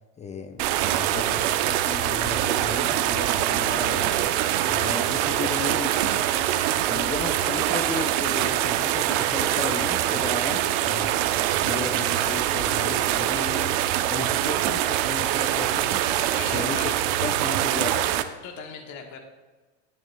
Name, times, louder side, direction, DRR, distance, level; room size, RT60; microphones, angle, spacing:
voice 1, 0.2-4.4 4.6-6.2 6.5-11.2 11.6-13.8 14.1-16.9 17.2-18.2, left 5 dB, 20° left, 7 dB, 0.5 m, -35 dB
sound 1, 0.6-18.2, right 12 dB, 70° right, 0.7 m, -24 dB
voice 2, 16.3-16.9 18.4-19.2, left 6 dB, 50° left, 3 dB, 1.4 m, -39 dB
10.5 x 9.0 x 2.3 m, 1.3 s
supercardioid pair, 105°, 37 cm